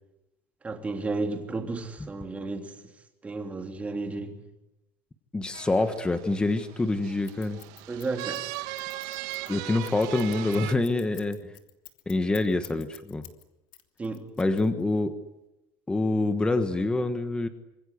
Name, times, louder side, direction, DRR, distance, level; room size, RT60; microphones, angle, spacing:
voice 1, 0.6-2.7 3.2-4.4 7.9-8.4 14.0-14.3, right 3 dB, 15° right, 3.2 m, -32 dB
voice 2, 5.3-7.6 9.5-11.5 12.1-13.2 14.4-15.2 15.9-17.5, left 2 dB, 10° left, 1.4 m, -26 dB
sound 1, 5.5-10.7, right 17 dB, 70° right, 2.1 m, -38 dB
Scissors, 7.2-13.4 13.7-15.0, left 18 dB, 75° left, 3.1 m, -48 dB
27.5 x 26.5 x 8.2 m
cardioid pair, 175°, 11 cm